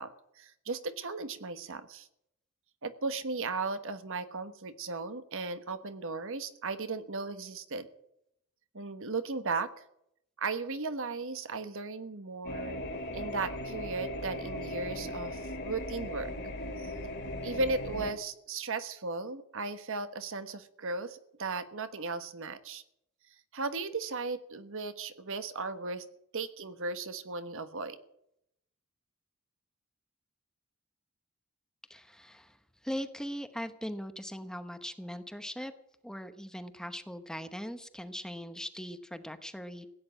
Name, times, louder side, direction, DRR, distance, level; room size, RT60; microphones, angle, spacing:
voice 1, 0.0-2.1 2.8-7.9 8.7-9.7 10.4-12.8 13.1-16.3 16.8-16.9 17.4-22.8 23.5-26.1 26.3-28.0, right 3 dB, 60° right, 11 dB, 1.3 m, -36 dB
sound 1, 12.4-18.1, left 1 dB, 50° left, 2.4 m, -38 dB
voice 2, 31.9-32.6 32.8-35.7 36.0-39.9, equal, 5° left, 10 dB, 0.9 m, -40 dB
16.5 x 9.5 x 8.9 m, 0.75 s
head